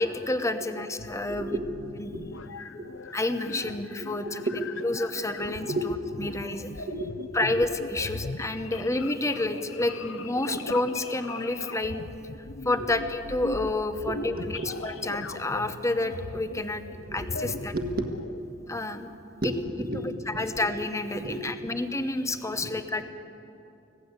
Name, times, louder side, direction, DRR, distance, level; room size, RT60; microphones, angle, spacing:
voice 1, 0.0-1.6 2.0-2.1 3.1-4.4 4.8-6.9 7.3-12.0 12.6-16.8 17.1-17.7 18.7-19.1 19.4-19.5 19.9-23.0, left 2 dB, 15° left, 9 dB, 1.0 m, -29 dB
sound 1, 1.0-18.4, left 3 dB, 85° left, 0.9 m, -40 dB
voice 2, 1.3-1.6 2.1-2.2 2.8-2.9 4.0-4.1 4.5-4.6 5.4-5.9 6.9-7.3 9.0-9.1 12.8-12.9 14.0-15.1 17.1-18.1 19.4-20.7 21.1-21.7 22.5-22.7, right 1 dB, 50° right, 4 dB, 1.7 m, -33 dB
25.5 x 17.0 x 8.2 m, 2.8 s
head